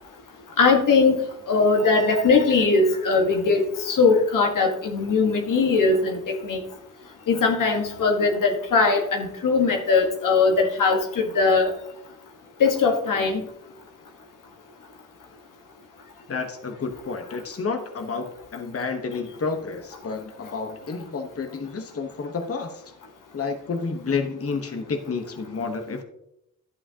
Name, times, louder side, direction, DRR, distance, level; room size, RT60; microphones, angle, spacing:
voice 1, 0.6-6.6 7.3-11.7 12.6-13.4, left 4 dB, 85° left, 3 dB, 1.4 m, -20 dB
voice 2, 16.3-22.9 23.3-26.0, left 4 dB, 45° left, 5 dB, 1.1 m, -30 dB
11.0 x 8.5 x 2.8 m, 0.80 s
cardioid pair, 65°, 31 cm